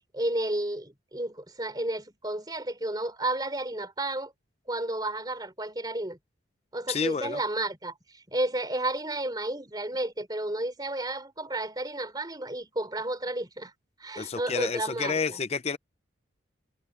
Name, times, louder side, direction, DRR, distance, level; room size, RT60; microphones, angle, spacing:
voice 1, 0.0-4.3 4.7-6.2 6.7-13.7 14.0-15.4, right 1 dB, 20° right, 3.5 m, -32 dB
voice 2, 6.9-7.4 14.2-15.8, left 5 dB, 30° left, 0.5 m, -30 dB
head